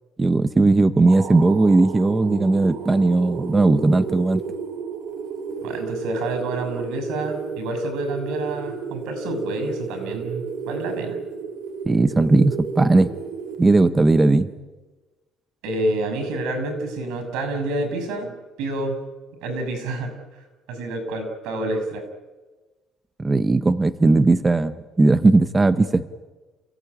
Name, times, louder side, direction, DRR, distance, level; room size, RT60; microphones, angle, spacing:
voice 1, 0.2-4.4 11.9-13.1 13.6-14.5 23.2-26.1, right 2 dB, 15° right, 12 dB, 0.7 m, -17 dB
sound 1, 1.1-14.3, right 5 dB, 65° right, 3.5 m, -33 dB
voice 2, 5.6-11.2 15.6-18.3 18.6-19.0 19.4-20.1 20.7-22.0, right 2 dB, 80° right, 9 dB, 6.6 m, -28 dB
28.5 x 17.0 x 9.9 m, 1.3 s
cardioid pair, 160°, 0 cm